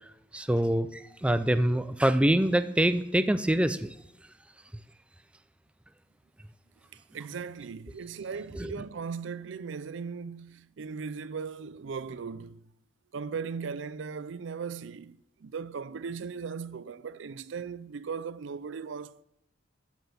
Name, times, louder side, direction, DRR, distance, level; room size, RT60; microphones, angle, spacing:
voice 1, 0.3-3.9 8.5-8.7, right 1 dB, 5° right, 0.4 m, -25 dB
voice 2, 7.1-12.6 13.1-19.2, right 5 dB, 80° right, 0.5 m, -38 dB
12.5 x 6.0 x 7.1 m
head